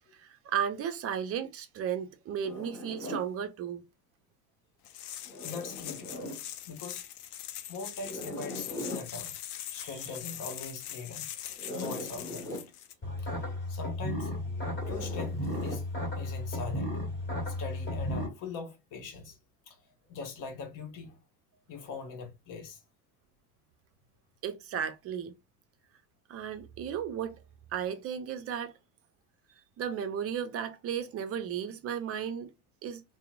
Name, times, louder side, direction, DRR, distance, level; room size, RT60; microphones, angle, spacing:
voice 1, 0.1-3.8 9.8-9.9 11.7-11.8 24.4-25.3 26.3-27.4 27.7-28.7 29.8-32.5 32.8-33.0, right 8 dB, 35° right, 0.5 m, -34 dB
Zipper (clothing), 2.4-3.3 5.2-6.4 8.0-9.1 11.5-12.7 14.7-15.9, left 1 dB, 5° left, 1.3 m, -40 dB
sound 1, 4.9-12.9, left 11 dB, 75° left, 0.5 m, -42 dB
voice 2, 5.4-6.3 6.7-7.1 7.7-9.4 9.7-11.4 11.8-12.6 13.2-13.3 13.7-14.3 14.9-15.9 16.2-17.0 17.5-19.4 19.7-19.8 20.1-21.2 21.7-22.8, left 4 dB, 45° left, 0.9 m, -42 dB
sound 2, 13.0-18.3, left 1 dB, 25° left, 1.5 m, -34 dB
2.8 x 2.0 x 2.3 m
hypercardioid pair, 75°, 45 cm